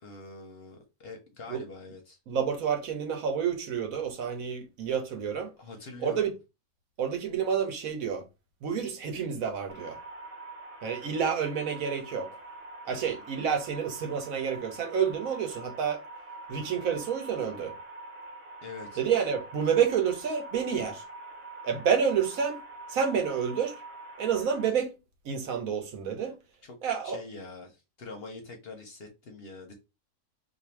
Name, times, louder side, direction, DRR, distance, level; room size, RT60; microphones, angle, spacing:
voice 1, 0.0-2.2 5.6-6.3 12.9-13.2 18.6-19.0 26.7-26.8 27.0-29.7, left 3 dB, 55° left, 0.8 m, -44 dB
voice 2, 2.3-5.5 6.0-6.3 7.0-8.3 8.6-10.0 10.8-12.4 12.8-16.0 16.5-17.8 19.0-21.0 21.6-22.6 22.9-23.8 24.2-25.0 25.2-26.4 26.8-27.2, right 7 dB, 75° right, 1.2 m, -29 dB
sound 1, 9.7-24.7, right 2 dB, 50° right, 0.9 m, -45 dB
2.6 x 2.5 x 4.2 m
omnidirectional pair, 1.5 m